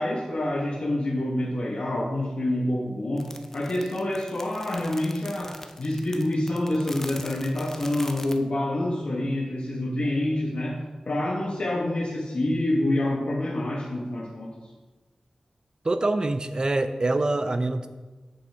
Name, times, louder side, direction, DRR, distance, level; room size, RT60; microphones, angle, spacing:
voice 1, 0.0-10.8 11.1-14.5, left 1 dB, 60° left, -5 dB, 1.3 m, -27 dB
sound 1, 3.2-8.4, left 1 dB, 20° left, 0.6 m, -42 dB
voice 2, 15.8-17.9, right 2 dB, 40° right, 9 dB, 0.5 m, -25 dB
8.0 x 7.0 x 3.5 m, 1.2 s
wide cardioid pair, 100°, 2 cm